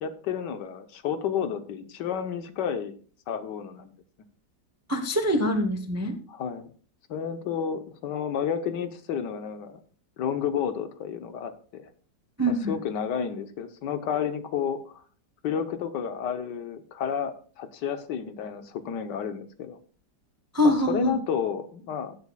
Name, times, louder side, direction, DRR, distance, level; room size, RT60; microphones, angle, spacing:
voice 1, 0.0-2.9 3.3-3.9 6.3-6.7 7.1-9.8 10.2-11.9 12.5-15.0 15.4-19.8 20.6-22.2, left 7 dB, 70° left, 10 dB, 1.5 m, -31 dB
voice 2, 4.9-6.1 12.4-12.7 20.5-21.1, equal, 15° right, 6 dB, 0.5 m, -24 dB
16.5 x 8.3 x 2.3 m, 0.43 s
omnidirectional pair, 2.0 m